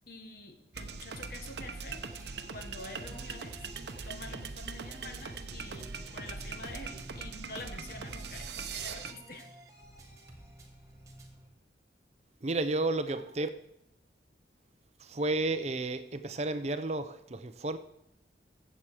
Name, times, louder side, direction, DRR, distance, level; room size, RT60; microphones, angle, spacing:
voice 1, 0.1-2.1 2.5-3.6 4.0-9.5, left 2 dB, 55° left, 1.4 m, -47 dB
sound 1, 0.7-9.1, right 4 dB, 70° right, 0.8 m, -41 dB
sound 2, 1.9-11.5, right 1 dB, 20° right, 1.6 m, -52 dB
voice 2, 12.4-13.5 15.0-17.8, right 2 dB, 35° right, 0.6 m, -32 dB
14.5 x 7.4 x 4.9 m
head